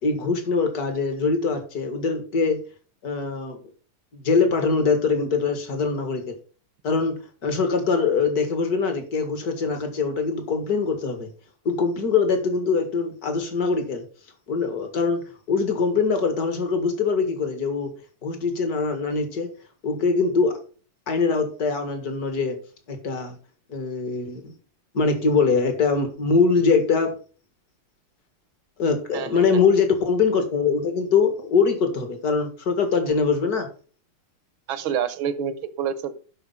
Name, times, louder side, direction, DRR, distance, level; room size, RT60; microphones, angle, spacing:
voice 1, 0.0-2.6 3.0-3.6 4.1-6.4 6.8-11.3 11.7-14.1 14.5-17.9 18.2-19.5 19.8-20.6 21.1-22.6 22.9-23.4 23.7-24.5 24.9-27.1 28.8-33.7, left 4 dB, 45° left, 6 dB, 2.2 m, -23 dB
voice 2, 29.1-29.7 34.7-36.1, right 8 dB, 70° right, 14 dB, 1.6 m, -28 dB
11.0 x 4.6 x 5.6 m, 0.38 s
omnidirectional pair, 2.4 m